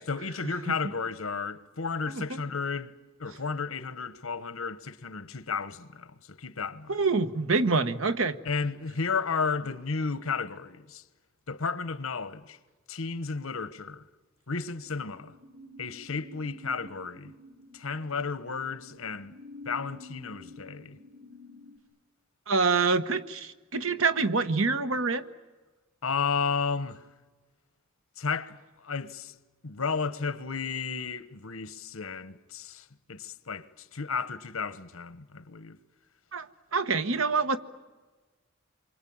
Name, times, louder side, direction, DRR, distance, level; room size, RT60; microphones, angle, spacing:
voice 1, 0.1-2.9 3.2-7.0 8.4-11.0 11.5-12.6 12.9-14.1 14.5-15.3 15.8-17.3 17.7-19.3 19.6-21.0 26.0-27.0 28.2-29.3 29.6-35.8, left 5 dB, 90° left, 1.1 m, -33 dB
voice 2, 6.9-8.4 22.5-25.3 36.3-36.5 36.7-37.6, right 4 dB, 75° right, 1.2 m, -26 dB
sound 1, 14.8-21.8, left 1 dB, 50° right, 4.5 m, -49 dB
27.5 x 24.0 x 8.7 m
head